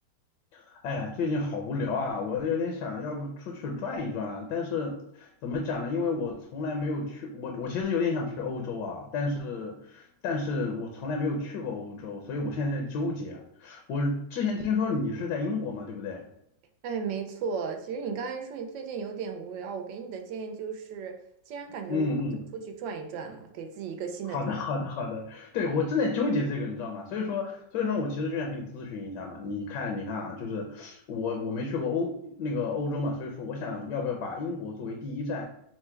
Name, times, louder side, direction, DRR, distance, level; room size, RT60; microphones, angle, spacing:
voice 1, 0.5-16.2 21.9-22.4 24.3-35.4, left 3 dB, 70° left, 1 dB, 1.2 m, -31 dB
voice 2, 16.8-21.1 21.5-22.1 22.5-24.5, right 6 dB, 80° right, 5 dB, 1.3 m, -35 dB
4.5 x 2.1 x 4.3 m, 0.77 s
omnidirectional pair, 2.1 m